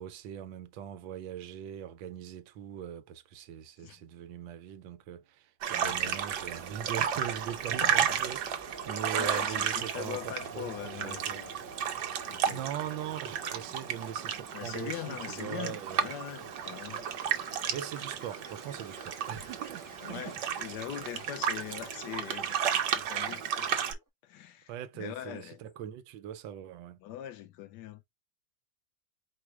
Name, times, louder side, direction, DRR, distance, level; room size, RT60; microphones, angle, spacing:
voice 1, 0.0-11.4 12.5-16.2 17.7-20.4 24.7-27.0, right 10 dB, 90° right, 1.4 m, -41 dB
sound 1, 5.6-23.9, right 8 dB, 70° right, 1.4 m, -33 dB
voice 2, 5.8-6.2 7.8-8.2 9.1-11.5 12.3-12.6 14.5-17.6 20.0-23.7 24.2-25.6 27.0-28.0, left 11 dB, 75° left, 1.2 m, -42 dB
sound 2, 5.8-21.9 23.8-24.1, right 2 dB, 20° right, 0.5 m, -52 dB
4.8 x 2.0 x 4.6 m
omnidirectional pair, 2.0 m